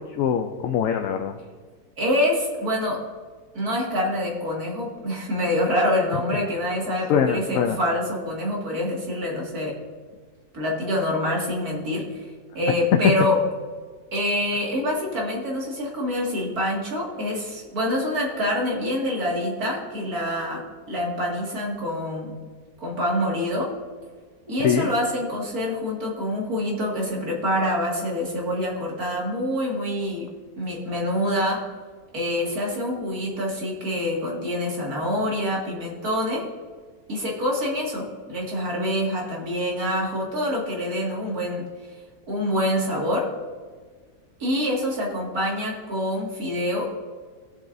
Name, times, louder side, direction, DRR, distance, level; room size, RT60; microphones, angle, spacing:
voice 1, 0.0-1.4 7.1-7.8 13.0-13.1 24.6-24.9, left 8 dB, 70° left, 6 dB, 0.9 m, -22 dB
voice 2, 2.0-3.0 3.5-9.8 10.5-12.3 12.5-13.4 14.1-20.6 20.9-22.3 22.8-23.7 24.5-30.3 30.6-31.6 32.1-36.5 37.1-41.6 42.3-43.3 44.4-46.9, left 1 dB, 70° right, -3 dB, 2.6 m, -26 dB
18.0 x 7.4 x 2.6 m, 1.5 s
omnidirectional pair, 1.6 m